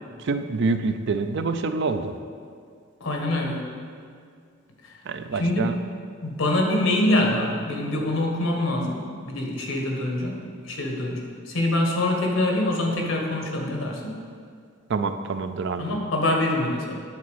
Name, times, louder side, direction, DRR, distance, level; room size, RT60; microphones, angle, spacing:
voice 1, 0.2-2.1 5.1-5.7 14.9-15.9, right 4 dB, 60° right, 9 dB, 0.4 m, -26 dB
voice 2, 3.0-3.6 4.8-4.9 5.4-5.7 6.2-14.2 15.8-17.0, left 1 dB, 85° left, 1 dB, 1.4 m, -25 dB
9.7 x 4.1 x 6.3 m, 2.2 s
head